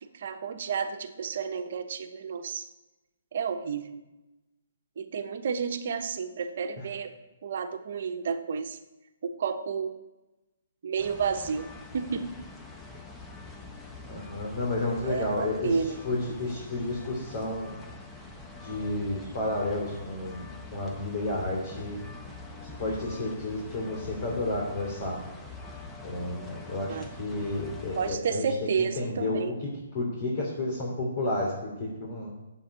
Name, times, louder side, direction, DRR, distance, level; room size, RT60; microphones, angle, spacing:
voice 1, 0.1-2.7 3.3-4.0 5.0-7.1 7.4-8.8 9.2-9.9 10.8-11.7 11.9-12.3 15.0-16.0 26.9-27.1 28.0-29.5, right 6 dB, 60° right, 7 dB, 1.1 m, -31 dB
sound 1, 11.0-28.2, left 3 dB, 10° left, 1.2 m, -44 dB
voice 2, 14.1-17.7 18.6-20.4 20.7-22.0 22.6-25.2 26.0-28.5 29.0-29.5 29.9-31.5 32.0-32.3, left 2 dB, 50° left, -3 dB, 3.2 m, -31 dB
7.9 x 7.7 x 8.6 m, 1.0 s
hypercardioid pair, 140°, 0 cm